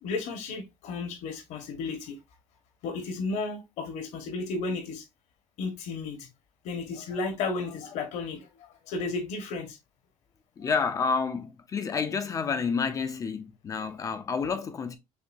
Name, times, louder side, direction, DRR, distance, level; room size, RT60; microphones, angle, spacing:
voice 1, 0.0-2.2 2.8-5.0 5.6-6.3 6.6-9.8 10.6-10.7, left 3 dB, 65° left, 1.4 m, -33 dB
voice 2, 10.6-15.0, left 5 dB, 25° left, 0.5 m, -29 dB
6.6 x 2.7 x 2.6 m
cardioid pair, 165°, 13 cm